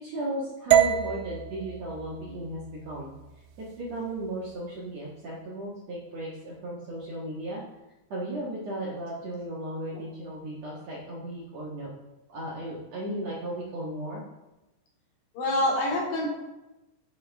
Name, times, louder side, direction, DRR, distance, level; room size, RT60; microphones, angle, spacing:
voice 1, 0.0-3.1 3.6-7.6 8.1-11.9 12.3-14.2, right 1 dB, 55° right, -6 dB, 2.0 m, -35 dB
sound 1, 0.7-4.8, right 11 dB, 90° right, 3.0 m, -28 dB
voice 2, 15.3-16.3, left 1 dB, 50° left, -4 dB, 3.6 m, -27 dB
9.1 x 8.1 x 3.5 m, 0.99 s
omnidirectional pair, 5.2 m